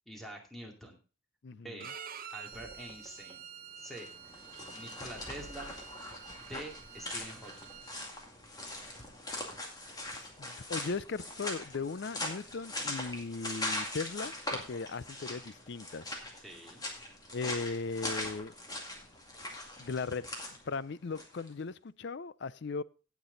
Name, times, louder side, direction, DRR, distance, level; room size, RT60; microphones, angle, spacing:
voice 1, 0.1-1.0 1.5-1.9 2.3-3.4 3.8-4.1 4.7-5.7 6.4-7.7 16.4-16.8, right 1 dB, ahead, 2.4 m, -46 dB
voice 2, 1.4-1.9 10.1-16.0 17.3-18.5 19.8-20.2 20.6-22.8, left 4 dB, 55° left, 0.5 m, -38 dB
Bowed string instrument, 1.8-8.1, right 7 dB, 40° right, 0.9 m, -48 dB
sound 1, 2.5-7.5, right 1 dB, 15° right, 2.4 m, -56 dB
sound 2, 3.9-21.5, left 1 dB, 20° left, 2.2 m, -41 dB
17.0 x 6.1 x 3.9 m
head